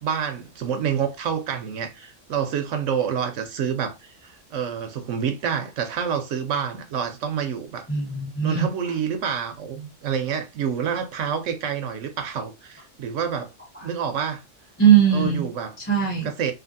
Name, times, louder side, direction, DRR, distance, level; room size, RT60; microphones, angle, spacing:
voice 1, 0.0-7.9 8.4-13.5 13.8-14.4 15.1-15.7 16.2-16.5, right 7 dB, 70° right, 0.9 m, -28 dB
voice 2, 7.9-8.7 13.7-13.9 14.8-15.4 15.8-16.3, right 8 dB, 10° left, 0.7 m, -19 dB
2.7 x 2.5 x 2.6 m
omnidirectional pair, 1.4 m